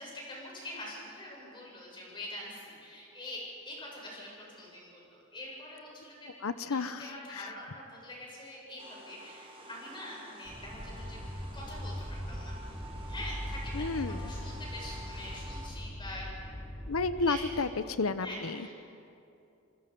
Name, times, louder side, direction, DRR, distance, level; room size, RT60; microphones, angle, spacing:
voice 1, 0.0-6.3 6.6-11.2 11.5-12.5 13.1-16.3 17.2-17.4 18.2-18.7, left 1 dB, 25° left, -3 dB, 7.1 m, -44 dB
voice 2, 6.4-7.5 13.7-14.3 16.9-18.7, left 3 dB, 90° left, 12 dB, 0.8 m, -32 dB
sound 1, 8.8-15.7, right 1 dB, 30° right, 3.1 m, -50 dB
sound 2, 10.4-17.7, equal, 10° right, 3.3 m, -40 dB
28.5 x 19.5 x 5.4 m, 2.7 s
head